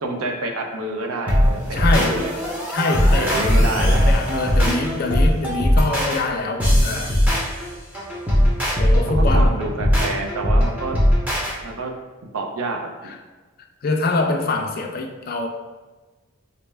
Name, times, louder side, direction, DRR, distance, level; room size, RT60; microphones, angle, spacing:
voice 1, 0.0-2.3 3.2-4.0 9.1-10.9 11.6-11.9 12.3-13.1, right 2 dB, 90° right, 3 dB, 0.5 m, -28 dB
sound 1, 1.3-11.5, equal, 5° right, 0.6 m, -19 dB
voice 2, 1.7-2.2 2.7-7.1 8.7-9.5 13.0-13.2 13.8-15.5, left 3 dB, 45° left, 3 dB, 0.3 m, -24 dB
3.9 x 2.1 x 3.3 m, 1.3 s
head